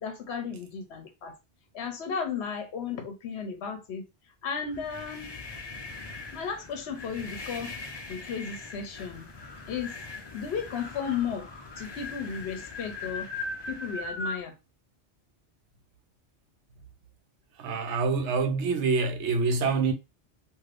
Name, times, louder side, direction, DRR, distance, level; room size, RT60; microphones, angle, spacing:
voice 1, 0.0-1.3 1.7-4.0 4.4-5.3 6.3-7.7 8.1-9.3 9.7-10.0 10.3-11.5 11.8-13.3 13.7-14.6, left 6 dB, 70° left, 0.9 m, -34 dB
sound 1, 4.6-14.4, left 2 dB, 30° left, 0.5 m, -40 dB
voice 2, 17.6-19.9, right 4 dB, 90° right, 0.9 m, -26 dB
3.3 x 2.6 x 2.4 m
omnidirectional pair, 1.2 m